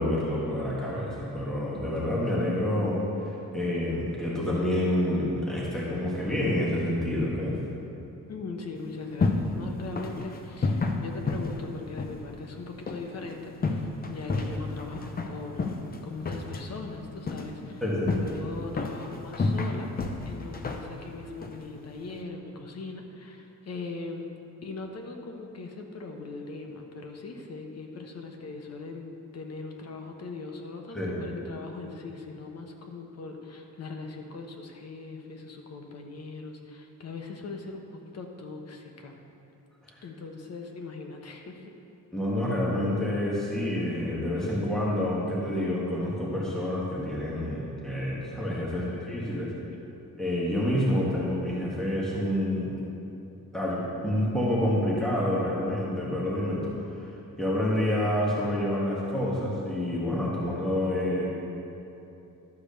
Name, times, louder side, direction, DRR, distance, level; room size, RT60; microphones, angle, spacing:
voice 1, 0.0-7.6 17.8-18.2 30.9-31.2 39.9-40.0 42.1-49.5 50.2-52.7 53.5-57.1 57.4-61.2, left 1 dB, ahead, -6 dB, 1.7 m, -28 dB
voice 2, 8.3-17.8 18.1-19.9 20.3-24.3 24.6-39.2 40.0-41.7 48.8-48.9 49.2-49.3, left 3 dB, 50° left, 3 dB, 1.1 m, -40 dB
sound 1, 8.8-22.2, left 3 dB, 25° left, 0.7 m, -32 dB
12.0 x 4.8 x 6.7 m, 2.8 s
cardioid pair, 135°, 34 cm